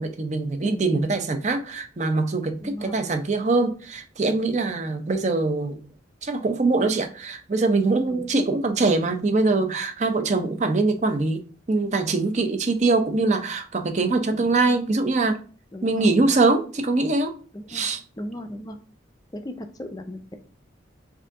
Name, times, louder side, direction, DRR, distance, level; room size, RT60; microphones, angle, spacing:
voice 1, 0.0-5.8 6.2-15.4 15.8-17.4 17.7-18.0, right 3 dB, 35° right, 0.5 m, -23 dB
voice 2, 0.6-1.2 2.6-3.0 8.1-8.3 14.4-14.5 15.7-16.1 17.5-17.9 18.2-18.8 19.3-20.4, left 1 dB, 20° left, 0.5 m, -36 dB
4.9 x 2.6 x 3.5 m
head